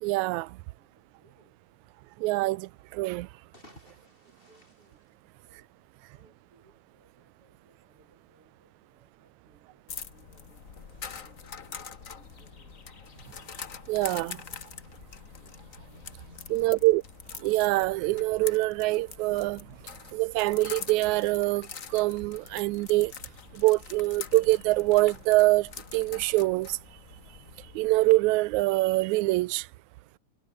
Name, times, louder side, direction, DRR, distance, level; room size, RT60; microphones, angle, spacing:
voice 1, 0.0-0.6 2.2-3.3 13.9-14.4 16.5-17.0 17.4-19.7 20.1-23.1 23.5-26.8 27.8-29.7, right 20 dB, 80° right, 1.9 m, -25 dB
voice 2, 0.6-1.6 3.9-5.1 5.4-5.8 6.1-10.7 11.1-13.0 16.6-17.0, right 2 dB, 45° right, 8.6 m, -65 dB
sound 1, 3.3-5.9, left 1 dB, 15° left, 7.7 m, -57 dB
sound 2, 9.9-28.1, left 6 dB, 40° left, 1.1 m, -44 dB
omnidirectional pair, 3.4 m